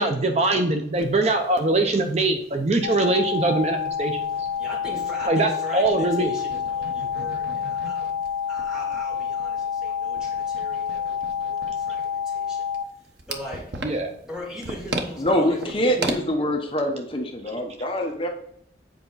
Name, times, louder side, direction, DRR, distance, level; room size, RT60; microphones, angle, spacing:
voice 1, 0.0-4.5 5.3-6.3 13.8-14.1, right 2 dB, 35° right, 0.6 m, -22 dB
sound 1, 0.9-1.1 1.4-1.5 1.8-1.9 2.5-5.5 5.8-16.2, right 2 dB, 75° right, 1.1 m, -37 dB
sound 2, 2.8-12.8, left 7 dB, 90° left, 1.4 m, -28 dB
voice 2, 4.6-8.2 8.5-12.7 13.2-13.8 14.2-16.0, left 1 dB, 5° right, 2.2 m, -40 dB
voice 3, 15.2-18.3, equal, 30° left, 1.0 m, -24 dB
8.0 x 4.9 x 4.0 m
head